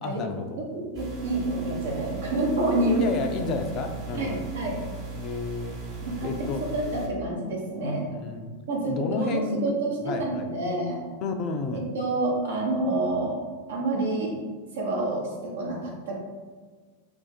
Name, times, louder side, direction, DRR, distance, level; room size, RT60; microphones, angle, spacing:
voice 1, 0.0-0.6 3.0-4.4 5.2-5.8 6.2-6.7 8.1-8.6 8.9-9.7 10.0-10.5 11.2-11.9, left 4 dB, 35° left, 5 dB, 0.3 m, -31 dB
voice 2, 0.6-3.0 4.1-4.8 6.0-8.1 8.7-11.0 11.7-13.4 13.7-14.3 14.7-16.2, right 2 dB, 60° right, -2 dB, 0.9 m, -28 dB
sound 1, 0.9-7.1, right 3 dB, 35° right, 1.0 m, -37 dB
2.5 x 2.3 x 4.0 m, 1.4 s
figure-of-eight pair, 90°, 0 cm